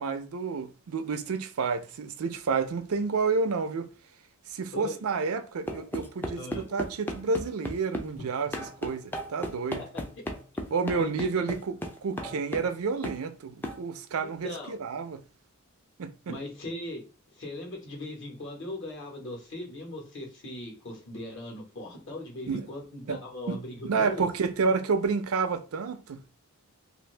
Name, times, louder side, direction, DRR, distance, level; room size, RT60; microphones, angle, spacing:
voice 1, 0.0-3.9 4.5-8.5 8.8-9.8 10.7-11.7 12.0-15.2 16.0-16.1 22.5-22.7 23.1-23.2 23.5-23.6 23.8-26.3, right 4 dB, 75° right, 0.5 m, -30 dB
sound 1, 5.7-8.1 8.5-12.8 13.0-13.2 13.6-13.8, left 1 dB, 10° left, 0.4 m, -35 dB
voice 2, 11.0-11.4 14.4-14.8 16.3-17.0 17.3-24.3, left 1 dB, 55° left, 1.3 m, -39 dB
2.7 x 2.6 x 3.2 m
head